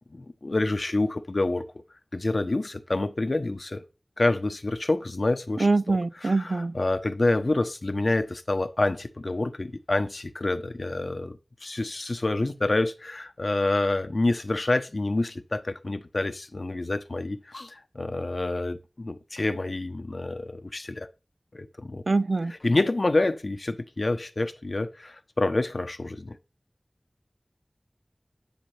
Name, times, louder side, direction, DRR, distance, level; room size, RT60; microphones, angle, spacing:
voice 1, 0.1-1.6 2.1-3.8 4.2-21.1 21.5-22.0 22.6-26.4, left 2 dB, 70° left, 1.0 m, -27 dB
voice 2, 5.6-6.7 22.1-22.5, right 3 dB, 85° right, 0.4 m, -24 dB
10.5 x 5.2 x 3.4 m
wide cardioid pair, 40°, 0 cm